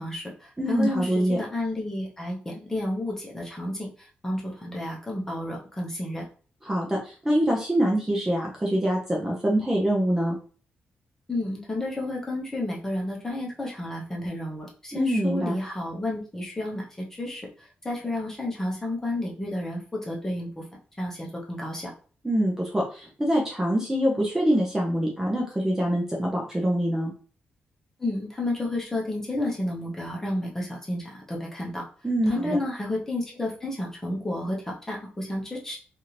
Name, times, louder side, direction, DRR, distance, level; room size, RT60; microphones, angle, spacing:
voice 1, 0.0-6.2 11.3-17.4 17.8-20.6 21.0-21.9 28.0-31.8 32.3-35.8, left 1 dB, 15° left, -2 dB, 0.9 m, -31 dB
voice 2, 0.6-1.4 6.6-10.4 14.9-15.5 22.2-27.1 32.0-32.6, equal, 10° right, -3 dB, 0.6 m, -24 dB
3.3 x 2.5 x 2.9 m, 0.39 s
wide cardioid pair, 150°, 3 cm